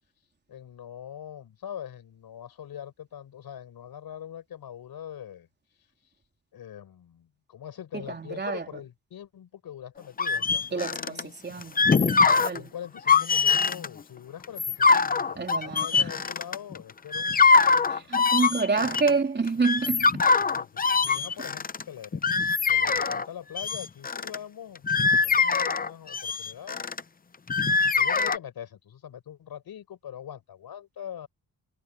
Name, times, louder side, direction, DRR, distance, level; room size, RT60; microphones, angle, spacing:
voice 1, 0.5-5.5 6.5-11.3 12.3-18.2 18.8-18.9 20.4-22.2 22.7-26.8 28.0-31.3, left 9 dB, 80° left, 5.8 m, -43 dB
voice 2, 7.9-8.7 10.7-11.2 11.4-12.7 15.4-16.1 17.9-20.2, right 4 dB, 30° right, 3.3 m, -28 dB
sound 1, 10.2-11.2 11.6-12.6 13.0-13.9 14.4-16.8 17.1-19.1 19.5-23.3 23.6-24.4 24.8-27.0 27.5-28.4, left 4 dB, 25° left, 0.6 m, -23 dB
wide cardioid pair, 135°, 36 cm